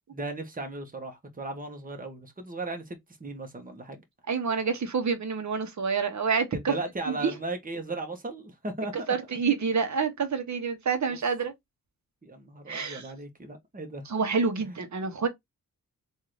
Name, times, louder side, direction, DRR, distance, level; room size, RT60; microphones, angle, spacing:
voice 1, 0.1-4.0 6.5-9.1 11.1-11.2 12.2-14.1, right 2 dB, 25° right, 1.2 m, -37 dB
voice 2, 4.3-6.7 7.2-7.3 9.1-11.5 12.7-13.0 14.1-15.3, right 5 dB, 55° right, 1.1 m, -27 dB
3.7 x 2.7 x 3.2 m
cardioid pair, 75°, 35 cm